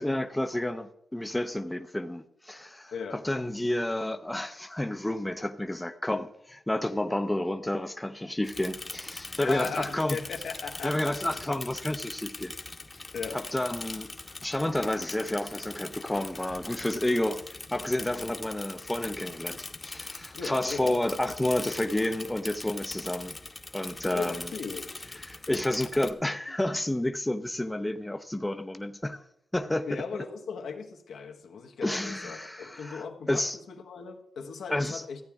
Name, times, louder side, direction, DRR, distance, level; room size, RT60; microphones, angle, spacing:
voice 1, 0.0-10.2 10.8-12.6 13.3-14.1 14.4-17.4 17.7-23.3 23.7-24.4 25.3-29.2 29.5-29.9 31.8-33.6 34.7-35.0, left 1 dB, 10° left, 0.6 m, -30 dB
voice 2, 2.9-3.2 9.4-11.6 13.1-13.4 20.3-21.0 24.1-24.9 29.9-35.2, left 5 dB, 85° left, 1.4 m, -38 dB
Bicycle / Mechanisms, 8.4-26.1, left 3 dB, 30° left, 1.0 m, -41 dB
14.0 x 8.9 x 3.6 m
cardioid pair, 85°, 0 cm